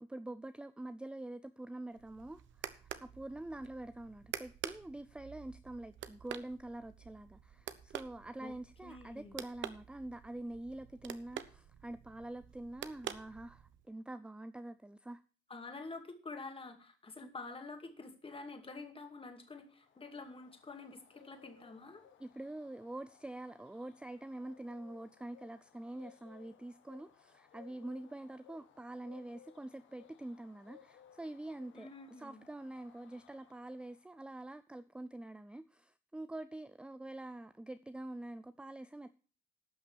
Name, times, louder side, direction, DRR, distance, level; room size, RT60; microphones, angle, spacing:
voice 1, 0.0-15.2 17.2-17.3 22.2-31.9 32.2-39.1, right 1 dB, 5° right, 0.4 m, -46 dB
sound 1, 1.9-13.9, right 10 dB, 70° right, 0.9 m, -48 dB
voice 2, 8.8-9.4 15.5-22.0 31.7-32.4, left 3 dB, 25° left, 2.4 m, -48 dB
Bird, 19.5-34.2, left 9 dB, 75° left, 1.5 m, -63 dB
12.0 x 5.9 x 7.0 m
cardioid pair, 90°, 20 cm